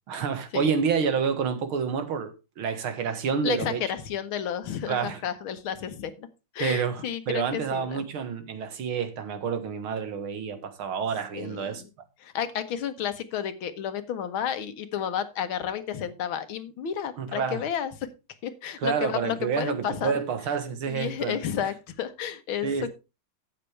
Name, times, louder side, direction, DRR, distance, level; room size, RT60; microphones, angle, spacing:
voice 1, 0.1-3.8 4.9-5.2 6.6-11.8 17.2-17.6 18.8-21.7 22.6-22.9, right 6 dB, 90° right, 2.3 m, -29 dB
voice 2, 3.4-6.3 6.6-8.1 11.3-11.8 12.2-17.9 18.4-20.1 20.9-22.9, left 9 dB, 80° left, 2.0 m, -31 dB
12.5 x 8.3 x 3.3 m
omnidirectional pair, 2.2 m